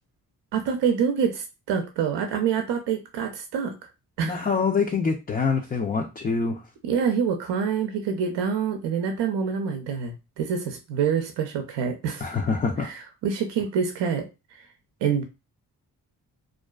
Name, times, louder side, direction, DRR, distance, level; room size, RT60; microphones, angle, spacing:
voice 1, 0.5-3.7 4.2-4.5 6.8-12.3 12.8-14.3 14.5-14.6 15.0-15.2, right 7 dB, 70° right, 5 dB, 0.6 m, -26 dB
voice 2, 4.2-6.6 12.2-12.9, left 5 dB, 20° left, 2 dB, 0.4 m, -25 dB
2.4 x 2.3 x 2.2 m, 0.27 s
supercardioid pair, 45°, 44 cm